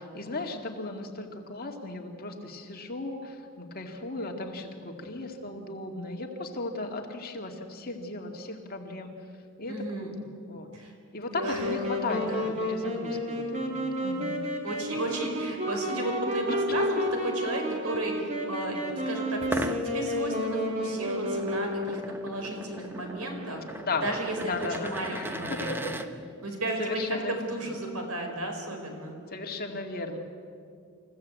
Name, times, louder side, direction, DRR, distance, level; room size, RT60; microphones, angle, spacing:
voice 1, 0.0-9.1 9.6-10.1 10.5-10.7 11.1-14.4 23.8-24.0 24.4-25.9 26.8-27.3 29.3-30.2, left 2 dB, 45° left, 3 dB, 2.2 m, -36 dB
voice 2, 9.7-10.1 10.7-10.9 11.4-11.6 12.2-12.5 14.6-23.7 24.0-26.0 26.4-29.1, right 1 dB, 90° right, 3 dB, 4.6 m, -34 dB
Wind instrument woodwind instrument, 11.3-22.2, equal, 35° right, 3.0 m, -31 dB
sound 1, 19.4-26.1, right 1 dB, 10° right, 1.0 m, -38 dB
27.5 x 15.5 x 8.3 m, 2.4 s
head